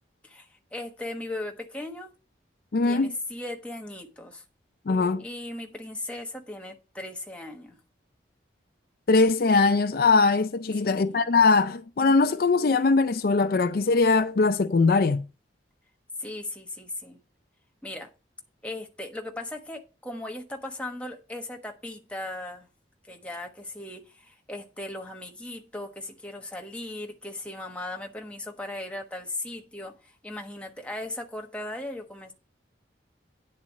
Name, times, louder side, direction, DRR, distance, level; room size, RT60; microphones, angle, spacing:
voice 1, 0.2-2.1 2.8-4.4 5.2-7.8 10.8-11.3 16.2-17.2 17.8-18.1 18.6-22.7 23.1-32.3, left 2 dB, 5° left, 1.2 m, -37 dB
voice 2, 2.7-3.2 4.9-5.2 9.1-15.2, left 4 dB, 50° left, 0.4 m, -21 dB
9.8 x 4.1 x 7.3 m
head